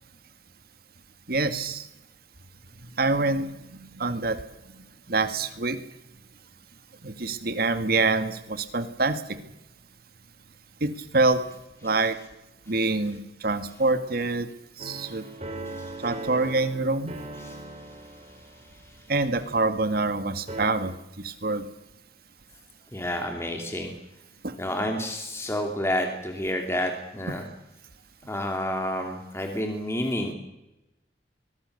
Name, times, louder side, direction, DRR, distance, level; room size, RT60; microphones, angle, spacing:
voice 1, 1.3-1.9 2.8-4.4 5.1-5.8 7.0-9.2 10.8-11.4 11.8-12.2 12.7-14.5 14.8-15.3 16.0-17.1 19.1-21.6 24.4-24.5 27.3-27.4, right 3 dB, 60° right, 10 dB, 1.9 m, -26 dB
sound 1, 14.8-20.2 20.5-20.7, right 2 dB, 40° right, 3.7 m, -40 dB
voice 2, 15.7-16.0 17.4-17.5 22.9-23.9 24.6-27.4 28.3-30.3, left 1 dB, 15° left, 3 dB, 2.6 m, -29 dB
23.0 x 22.0 x 6.8 m, 0.93 s
head